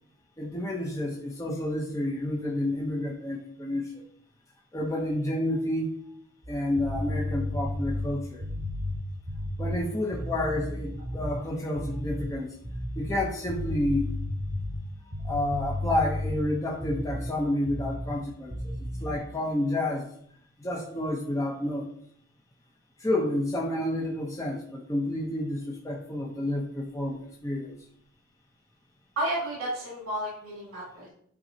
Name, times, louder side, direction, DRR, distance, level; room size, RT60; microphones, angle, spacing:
voice 1, 0.4-4.0 4.7-5.9 6.5-8.5 9.6-12.5 13.0-14.1 15.2-20.1 20.6-21.9 23.0-27.7, left 1 dB, 15° left, -2 dB, 0.8 m, -30 dB
sound 1, 6.4-11.4 11.7-12.3 12.6-17.3 17.7-18.2 18.5-19.2, left 1 dB, 45° right, 1.8 m, -33 dB
voice 2, 29.2-31.1, right 1 dB, 70° right, -6 dB, 3.0 m, -32 dB
9.8 x 3.9 x 2.8 m, 0.64 s
head